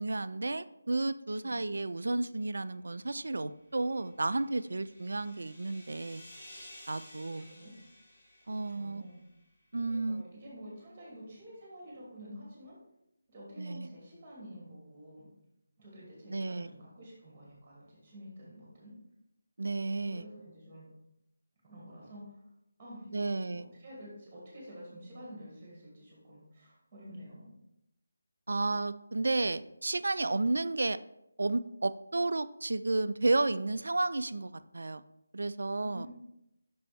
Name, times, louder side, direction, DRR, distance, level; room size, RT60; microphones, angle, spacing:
voice 1, 0.0-6.2 6.9-7.5 8.5-9.0 9.7-10.2 13.6-13.9 16.3-16.7 19.6-20.3 23.1-23.6 28.5-31.0 31.4-35.0 35.3-36.1, right 2 dB, 60° right, 14 dB, 0.3 m, -32 dB
sound 1, 3.7-9.3, left 1 dB, 30° left, 2.0 m, -54 dB
voice 2, 7.3-7.7 8.4-9.2 9.9-12.8 13.3-15.3 15.8-18.9 20.0-20.9 21.6-22.4 22.8-27.5 35.8-36.1, equal, 15° right, -5 dB, 2.4 m, -49 dB
6.6 x 6.0 x 3.5 m, 0.83 s
figure-of-eight pair, 155°, 0 cm